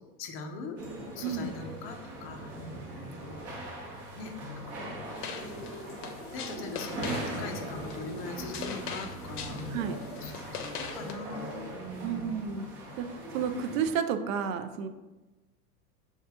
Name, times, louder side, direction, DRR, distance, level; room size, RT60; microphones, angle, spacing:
voice 1, 0.2-0.8 1.1-3.9 4.2-4.3 4.8-5.6 6.3-9.6 10.2-10.5 10.8-12.5, left 3 dB, 30° left, 4 dB, 0.5 m, -42 dB
sound 1, 0.8-13.9, right 1 dB, 30° right, 1.0 m, -40 dB
voice 2, 1.2-1.5 9.7-10.1 12.0-12.7 13.0-14.9, right 7 dB, 60° right, 9 dB, 0.5 m, -31 dB
sound 2, 5.2-11.1, left 6 dB, 80° left, 0.6 m, -42 dB
6.4 x 2.4 x 2.8 m, 1.1 s
hypercardioid pair, 115°, 46 cm